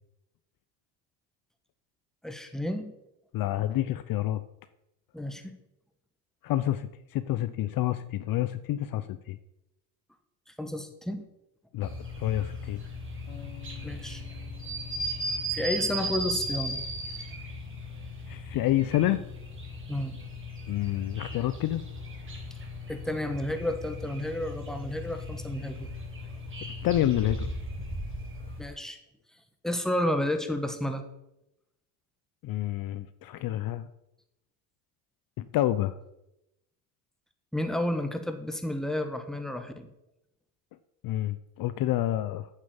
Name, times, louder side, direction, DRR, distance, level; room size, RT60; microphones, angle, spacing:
voice 1, 2.2-2.9 5.1-5.5 10.6-11.2 13.8-14.2 15.5-16.8 19.9-20.2 22.9-25.9 28.6-29.0 29.6-31.0 37.5-39.9, left 1 dB, ahead, 7 dB, 1.7 m, -31 dB
voice 2, 3.3-4.4 6.4-9.4 11.7-12.8 18.3-19.2 20.7-21.8 26.8-27.5 32.4-33.9 35.4-35.9 41.0-42.5, left 13 dB, 50° left, 13 dB, 0.7 m, -28 dB
sound 1, 11.8-28.6, equal, 25° right, 3.5 m, -37 dB
sound 2, 13.3-19.5, left 9 dB, 70° left, 2.4 m, -53 dB
9.1 x 7.4 x 7.2 m, 0.90 s
supercardioid pair, 85°, 43 cm